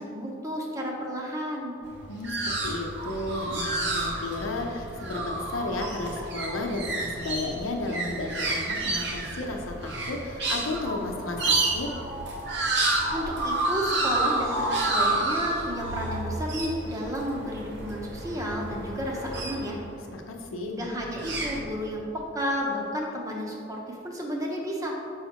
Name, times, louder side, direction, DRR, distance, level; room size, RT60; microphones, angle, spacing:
voice 1, 0.0-1.8 13.1-19.8 20.7-24.9, equal, 15° right, -1 dB, 0.7 m, -32 dB
sound 1, 1.8-20.0 20.9-21.6, right 2 dB, 60° right, 0.8 m, -30 dB
voice 2, 2.1-11.9 20.1-20.9, left 2 dB, 90° left, 2 dB, 0.6 m, -33 dB
6.4 x 5.6 x 2.9 m, 2.7 s
head